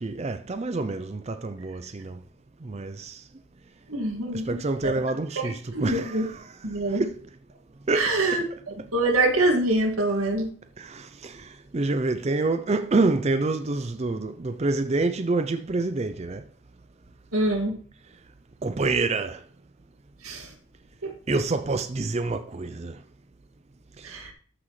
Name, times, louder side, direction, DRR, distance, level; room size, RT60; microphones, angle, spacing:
voice 1, 0.0-2.2 2.6-3.2 4.5-6.3 6.9-7.2 7.9-8.1 10.8-11.5 11.7-16.4 18.6-19.4 21.3-22.9, right 3 dB, 30° right, 0.4 m, -27 dB
voice 2, 3.9-4.4 4.8-4.9 5.4-6.2 6.6-7.0 7.9-10.5 17.3-17.7 20.2-20.5 21.0-21.1 24.0-24.3, right 2 dB, 90° right, 2.1 m, -25 dB
13.5 x 6.1 x 3.2 m
head